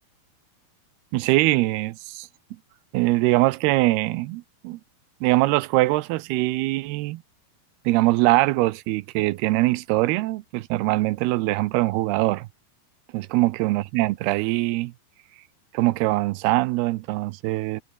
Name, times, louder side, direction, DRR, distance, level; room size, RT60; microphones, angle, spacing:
voice 1, 1.1-2.3 2.9-4.8 5.2-7.2 7.9-12.5 13.1-14.9 15.7-17.8, right 19 dB, 80° right, 2.7 m, -22 dB
omnidirectional pair, 4.6 m